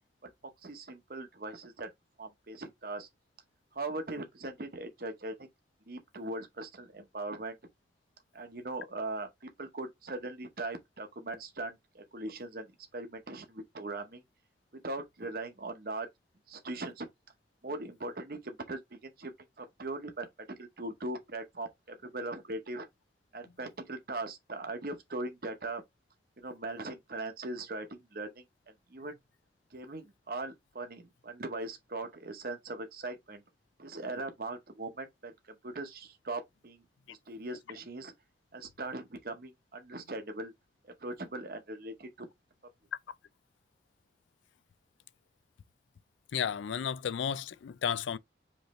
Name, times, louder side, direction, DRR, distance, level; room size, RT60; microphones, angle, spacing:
voice 1, 0.2-1.9 2.2-3.1 3.7-5.5 5.9-7.6 8.3-14.2 14.8-16.1 16.5-17.1 17.6-19.3 19.6-20.3 20.6-22.9 23.3-25.8 26.4-28.4 28.9-29.2 29.7-33.4 33.8-36.8 37.3-38.1 38.5-40.5 40.8-42.3, right 2 dB, 55° right, 0.9 m, -40 dB
voice 2, 46.3-48.2, left 8 dB, 90° left, 0.4 m, -33 dB
5.2 x 3.1 x 3.0 m
head